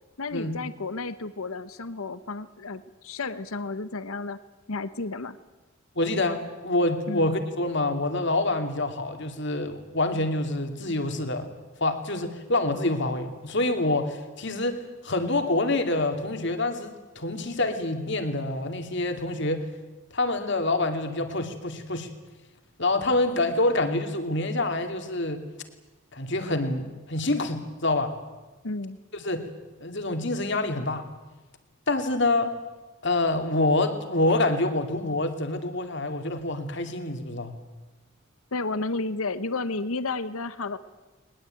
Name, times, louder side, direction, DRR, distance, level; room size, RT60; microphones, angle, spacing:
voice 1, 0.2-4.4 4.7-5.4 7.1-7.3 28.6-29.0 38.5-40.8, left 3 dB, 75° left, 14 dB, 1.0 m, -32 dB
voice 2, 5.9-11.5 11.8-19.7 20.1-22.1 22.8-25.4 26.1-28.1 29.1-29.5 29.8-31.0 31.9-32.5 33.0-37.5, left 2 dB, 55° left, 6 dB, 2.6 m, -26 dB
21.0 x 20.5 x 9.0 m, 1.2 s
head